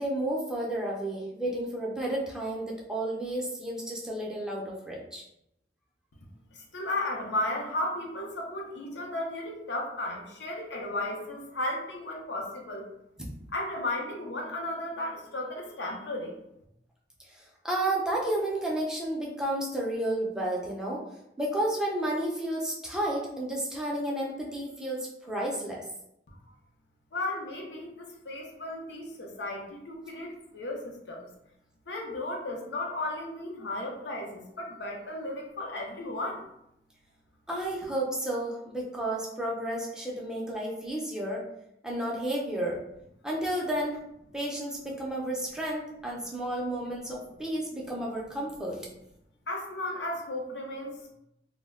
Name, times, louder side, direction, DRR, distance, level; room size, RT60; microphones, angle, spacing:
voice 1, 0.0-5.3 13.2-13.3 17.6-21.0 21.4-25.8 37.5-41.4 41.8-42.8 43.2-44.0 44.3-48.9, right 1 dB, 5° right, -3 dB, 0.4 m, -31 dB
voice 2, 6.5-12.9 13.5-16.4 27.1-31.3 31.9-36.4 49.5-51.1, left 1 dB, 75° left, 1 dB, 0.6 m, -34 dB
2.1 x 2.0 x 3.5 m, 0.80 s
head